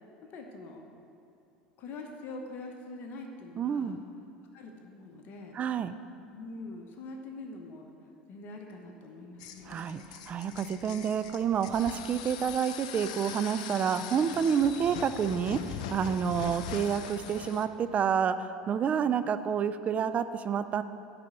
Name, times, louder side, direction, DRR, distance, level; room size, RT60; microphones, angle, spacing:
voice 1, 0.2-0.8 1.8-4.0 4.5-5.6 6.3-7.9 8.3-9.9, left 2 dB, 50° left, 3 dB, 0.9 m, -44 dB
voice 2, 3.6-4.0 5.5-5.9 9.7-20.8, right 7 dB, 35° right, 12 dB, 0.4 m, -29 dB
sound 1, 9.4-17.7, left 8 dB, 70° left, 0.5 m, -41 dB
9.7 x 4.2 x 6.7 m, 2.8 s
hypercardioid pair, 80°, 4 cm